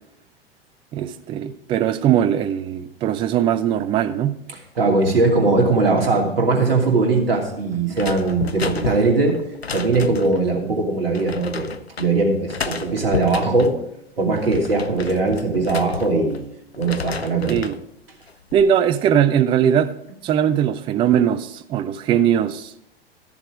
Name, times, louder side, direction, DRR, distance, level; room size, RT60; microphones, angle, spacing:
voice 1, 0.9-4.4 17.5-17.8 18.5-20.0 20.2-22.7, right 9 dB, 15° right, 0.4 m, -20 dB
voice 2, 4.8-9.3 9.7-11.7 12.0-13.7 14.2-16.4 16.8-17.6, right 3 dB, 70° right, 2.7 m, -20 dB
sound 1, 7.9-10.4 11.1-12.1 12.5-13.7 14.2-16.4 16.7-17.8 18.3-18.7, left 5 dB, 90° left, 0.5 m, -32 dB
13.0 x 7.0 x 4.9 m
figure-of-eight pair, 95°, 30 cm